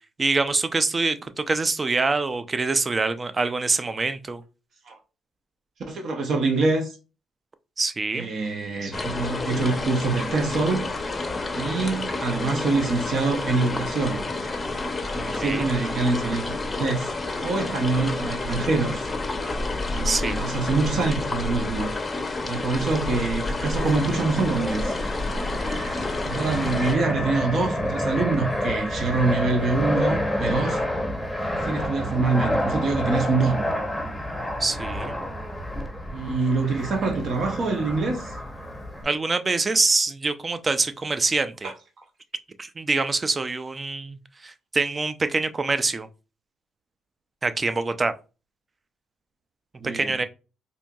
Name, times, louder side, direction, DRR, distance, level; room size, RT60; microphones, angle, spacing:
voice 1, 0.2-4.4 7.8-8.3 15.4-15.7 20.0-20.4 34.6-35.2 39.0-41.7 42.6-46.1 47.4-48.1 49.9-50.3, right 3 dB, 30° right, 0.4 m, -25 dB
voice 2, 5.9-7.0 8.1-10.9 11.5-14.2 15.2-17.1 17.4-19.1 19.9-21.9 22.4-25.0 25.4-25.9 26.2-30.8 31.6-33.7 35.7-35.9 36.1-38.3 41.6-41.7 49.8-50.1, right 3 dB, 60° right, 0.8 m, -25 dB
sound 1, 8.9-26.9, left 2 dB, 25° left, 0.6 m, -29 dB
Fixed-wing aircraft airplane, 23.8-39.0, left 1 dB, 5° left, 0.8 m, -29 dB
4.4 x 2.6 x 2.3 m
cardioid pair, 90°, 0 cm